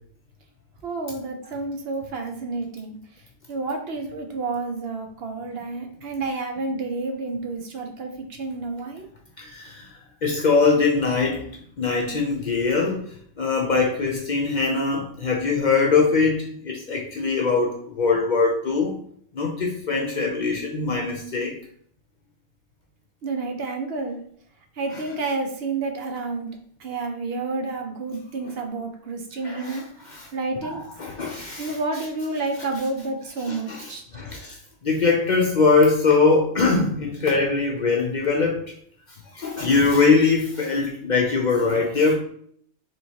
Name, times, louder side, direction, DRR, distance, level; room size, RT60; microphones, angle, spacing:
voice 1, 0.8-3.0 3.5-9.0 23.2-24.2 24.8-26.5 26.8-29.8 30.3-30.8 31.6-34.0, right 3 dB, 65° right, 4 dB, 0.8 m, -30 dB
voice 2, 9.4-9.9 10.2-11.4 11.8-13.1 13.4-18.9 19.3-21.5 24.9-25.0 29.4-29.8 30.1-30.3 30.6-31.8 33.4-34.6 34.8-38.6 39.3-42.1, left 4 dB, 50° left, 0 dB, 0.6 m, -22 dB
4.6 x 3.0 x 2.8 m, 0.63 s
omnidirectional pair, 1.2 m